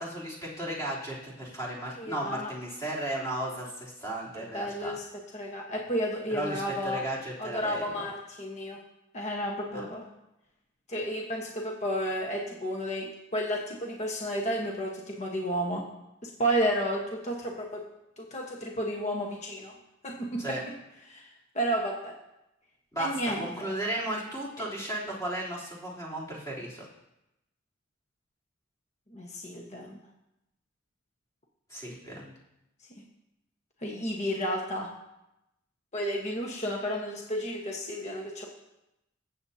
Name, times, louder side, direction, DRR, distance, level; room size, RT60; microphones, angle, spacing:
voice 1, 0.0-5.0 6.3-8.1 9.7-9.8 20.4-20.6 22.9-26.9 31.7-32.3, right 1 dB, 15° left, -6 dB, 3.4 m, -35 dB
voice 2, 2.0-2.5 4.3-5.0 5.3-7.0 7.4-8.8 9.1-10.1 10.9-15.8 16.2-17.8 18.2-19.7 20.0-20.7 21.1-21.3 21.5-22.1 23.0-23.5 29.1-30.0 32.9-33.0 33.8-34.9 35.9-38.4, equal, 35° left, -1 dB, 1.2 m, -32 dB
22.0 x 7.7 x 2.8 m, 0.89 s
head